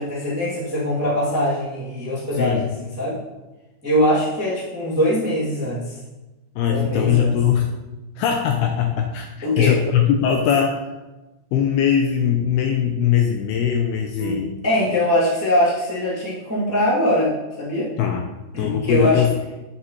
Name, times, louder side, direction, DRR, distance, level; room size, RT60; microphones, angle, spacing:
voice 1, 0.0-3.2 3.8-6.0 6.7-7.4 9.4-9.8 14.2-14.4 14.6-17.3 17.6-17.9 18.5-19.2, left 1 dB, 5° right, -9 dB, 1.3 m, -22 dB
voice 2, 2.4-2.7 6.6-7.7 8.2-10.8 11.5-14.5 18.0-18.2 18.6-19.3, left 8 dB, 85° left, 3 dB, 2.3 m, -20 dB
9.4 x 8.4 x 3.2 m, 1.1 s
omnidirectional pair, 5.2 m